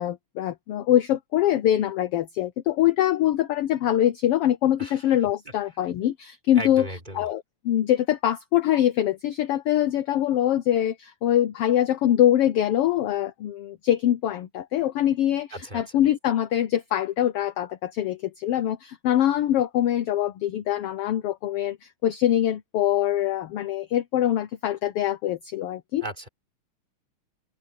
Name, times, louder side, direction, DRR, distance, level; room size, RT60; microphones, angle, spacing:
voice 1, 0.0-6.9 7.1-26.0, left 12 dB, 70° left, 1.4 m, -23 dB
voice 2, 6.5-7.2 15.5-15.9 26.0-26.3, right 1 dB, 15° right, 5.0 m, -35 dB
open air
omnidirectional pair, 3.5 m